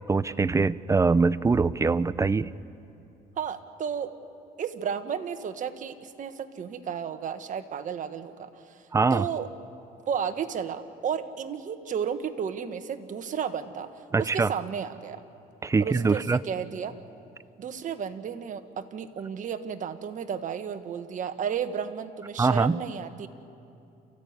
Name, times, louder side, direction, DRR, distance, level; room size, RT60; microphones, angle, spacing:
voice 1, 0.1-2.5 8.9-9.2 14.1-14.5 15.6-16.4 22.4-22.8, right 4 dB, 20° right, 16 dB, 0.5 m, -23 dB
voice 2, 3.4-4.1 4.6-8.7 9.1-9.5 10.1-13.9 14.2-15.2 15.8-16.9 17.6-23.3, right 7 dB, 50° right, 8 dB, 1.4 m, -33 dB
28.5 x 15.5 x 9.6 m, 2.7 s
cardioid pair, 110°, 17 cm